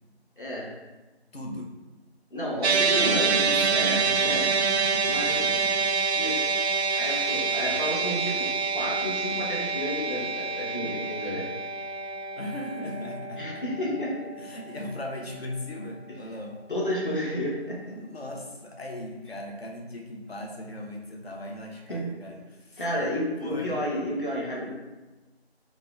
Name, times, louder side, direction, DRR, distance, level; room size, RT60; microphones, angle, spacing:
voice 1, 0.4-0.7 2.3-4.4 5.1-5.5 6.1-6.6 6.9-8.5 8.7-11.5 13.4-14.2 16.7-17.9 21.9-22.1 22.8-24.7, equal, 50° left, -5 dB, 1.3 m, -31 dB
voice 2, 1.3-1.7 2.7-4.5 4.9-5.8 12.4-13.6 13.9-14.0 14.4-16.6 17.9-23.1 23.4-23.7, left 1 dB, 70° left, 1 dB, 0.9 m, -38 dB
sound 1, 2.6-15.1, right 5 dB, 80° right, 0.5 m, -27 dB
4.7 x 2.4 x 3.3 m, 1.1 s
figure-of-eight pair, 175°, 32 cm